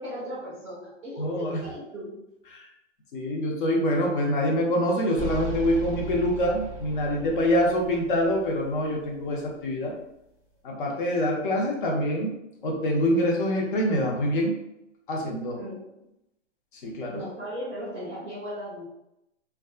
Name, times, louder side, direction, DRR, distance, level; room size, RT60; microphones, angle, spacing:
voice 1, 0.0-2.2 15.6-15.9 17.1-18.8, equal, 5° right, -13 dB, 0.5 m, -37 dB
voice 2, 1.2-1.6 2.5-2.7 3.1-9.9 10.6-12.3 12.6-14.6 15.1-15.6 16.8-17.2, equal, 45° left, -1 dB, 0.7 m, -25 dB
sound 1, 5.2-9.4, right 1 dB, 25° left, 1.1 m, -37 dB
2.6 x 2.2 x 2.3 m, 0.85 s
hypercardioid pair, 160°, 37 cm